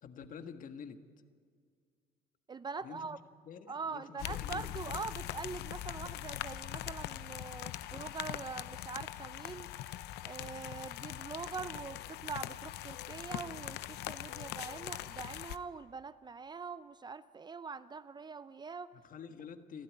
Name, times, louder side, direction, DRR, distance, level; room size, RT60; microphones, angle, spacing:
voice 1, 0.0-1.0 2.8-3.2 3.4-4.6 18.9-19.8, left 6 dB, 55° left, 8 dB, 1.5 m, -48 dB
voice 2, 2.5-3.2 3.7-9.7 10.2-18.9, right 5 dB, 25° right, 15 dB, 0.5 m, -43 dB
sound 1, 4.2-15.6, left 14 dB, 80° left, 0.7 m, -42 dB
29.5 x 12.5 x 9.5 m, 2.1 s
cardioid pair, 110°, 17 cm